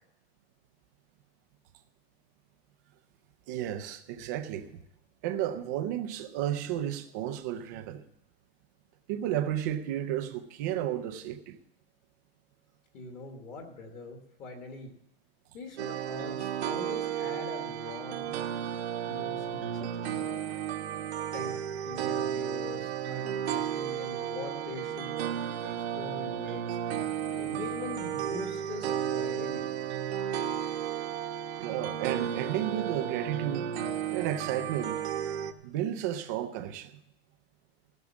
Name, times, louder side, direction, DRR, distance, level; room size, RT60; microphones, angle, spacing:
voice 1, 3.5-4.8 5.2-8.0 9.1-11.6 31.6-33.7 34.1-35.0 35.6-37.0, right 11 dB, 20° right, 0.4 m, -33 dB
voice 2, 12.9-14.9 15.5-18.3 19.1-20.2 21.3-25.2 25.6-26.8 27.4-29.6, left 3 dB, 25° left, 1.3 m, -43 dB
sound 1, 15.8-35.5, right 9 dB, 85° right, 1.3 m, -33 dB
15.5 x 6.2 x 7.1 m
supercardioid pair, 175°, 32 cm